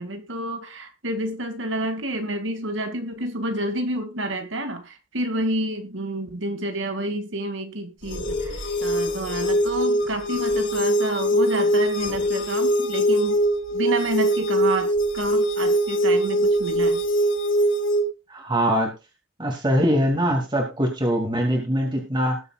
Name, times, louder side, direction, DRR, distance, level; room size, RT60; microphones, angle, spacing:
voice 1, 0.0-13.4 13.7-17.0, right 1 dB, 75° right, 6 dB, 2.4 m, -29 dB
sound 1, 8.0-18.0, equal, 80° left, 4.6 m, -22 dB
voice 2, 18.3-19.0 19.4-22.4, equal, 25° right, 1 dB, 2.8 m, -22 dB
20.0 x 7.9 x 2.5 m, 0.26 s
head